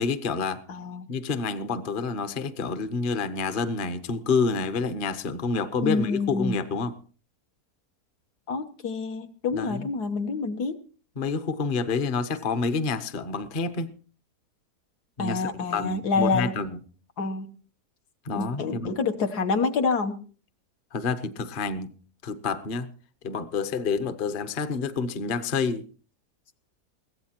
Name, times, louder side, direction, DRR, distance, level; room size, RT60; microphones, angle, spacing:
voice 1, 0.0-0.6 1.1-6.9 9.5-9.9 11.2-13.9 15.2-16.8 18.2-19.0 20.9-21.9 22.2-22.9 23.2-25.9, left 4 dB, 40° left, 11 dB, 0.8 m, -28 dB
voice 2, 0.7-1.1 5.8-6.6 8.5-10.8 15.2-16.5 17.2-17.6 18.3-20.2, left 4 dB, 75° left, 5 dB, 1.6 m, -27 dB
21.5 x 15.5 x 2.9 m, 0.39 s
omnidirectional pair, 1.7 m